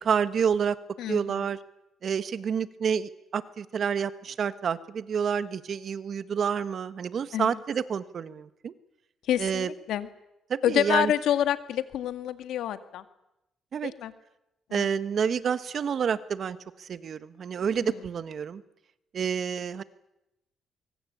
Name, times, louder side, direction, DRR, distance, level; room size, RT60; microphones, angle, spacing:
voice 1, 0.0-0.8 1.1-1.6 2.0-8.7 9.4-9.7 10.5-11.1 13.7-13.9 14.7-18.6 19.1-19.8, right 7 dB, 55° right, 13 dB, 1.5 m, -29 dB
voice 2, 1.0-1.5 7.3-7.6 9.2-10.1 10.6-13.0 13.8-14.1 14.7-14.9 17.8-18.0, left 11 dB, 80° left, 10 dB, 2.0 m, -28 dB
24.0 x 23.5 x 8.7 m, 0.89 s
cardioid pair, 90°, 0 cm